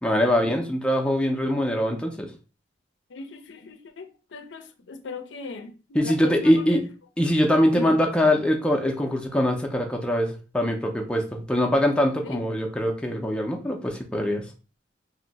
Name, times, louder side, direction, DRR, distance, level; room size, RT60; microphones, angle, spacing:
voice 1, 0.0-2.3 5.9-6.8 7.2-14.4, equal, 5° left, 0.4 m, -23 dB
voice 2, 3.1-4.1 4.3-6.8 7.7-8.0 12.2-12.4, left 3 dB, 85° left, 0.5 m, -38 dB
2.6 x 2.0 x 3.9 m
head